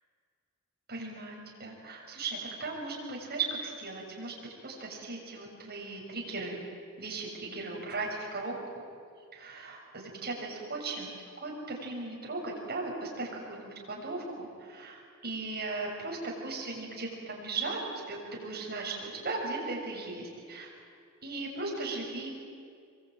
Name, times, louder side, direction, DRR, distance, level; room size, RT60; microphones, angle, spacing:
voice 1, 0.9-4.3 4.6-6.6 7.0-8.6 9.3-11.1 11.4-17.8 18.1-20.7 21.2-22.3, right 3 dB, 45° right, -1 dB, 6.7 m, -37 dB
26.0 x 23.5 x 9.2 m, 2.2 s
head